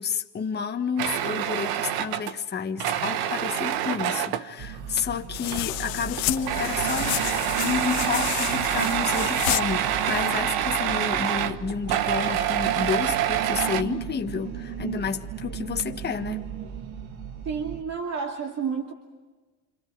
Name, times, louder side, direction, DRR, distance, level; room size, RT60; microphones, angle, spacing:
voice 1, 0.0-7.3 7.6-16.5, left 6 dB, 25° left, 1.5 m, -30 dB
sound 1, 1.0-4.5 5.4-5.9 6.2-13.8, right 10 dB, 60° right, 1.3 m, -26 dB
sound 2, 4.6-17.8, right 9 dB, 85° right, 2.5 m, -36 dB
sound 3, 5.3-10.4, left 18 dB, 80° left, 1.5 m, -31 dB
voice 2, 17.4-18.9, right 6 dB, 40° right, 2.5 m, -30 dB
28.5 x 28.0 x 4.8 m
supercardioid pair, 115°, 42 cm